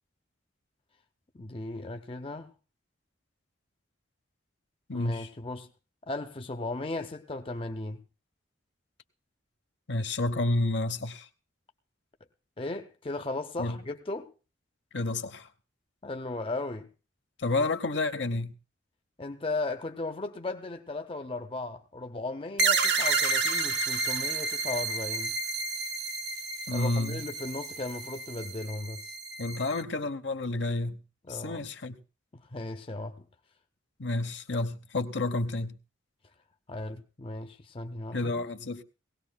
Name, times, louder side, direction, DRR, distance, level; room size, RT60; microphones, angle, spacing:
voice 1, 1.3-2.5 4.9-5.7 6.0-8.0 12.6-14.3 16.0-16.9 19.2-25.4 26.7-29.1 31.3-31.6 32.3-33.2 36.7-38.3, left 2 dB, 30° left, 0.6 m, -36 dB
voice 2, 4.9-5.3 9.9-11.3 13.6-13.8 14.9-15.5 17.4-18.5 26.7-27.2 29.4-31.0 31.3-32.0 34.0-35.8 38.1-38.8, left 2 dB, 65° left, 0.9 m, -30 dB
sound 1, 22.6-29.8, right 4 dB, 60° right, 0.8 m, -30 dB
20.0 x 17.5 x 2.2 m
head